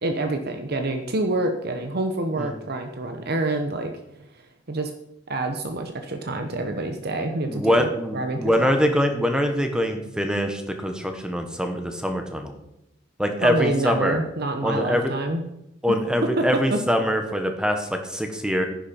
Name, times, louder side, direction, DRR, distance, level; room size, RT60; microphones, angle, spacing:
voice 1, 0.0-3.9 4.7-4.9 5.3-8.7 13.4-15.4 16.4-16.5 16.7-16.8, right 2 dB, 55° right, 5 dB, 1.0 m, -27 dB
voice 2, 7.4-12.5 13.2-14.2 14.6-15.1 15.8-18.7, equal, 5° right, 5 dB, 1.3 m, -24 dB
10.5 x 10.5 x 4.5 m, 0.84 s
head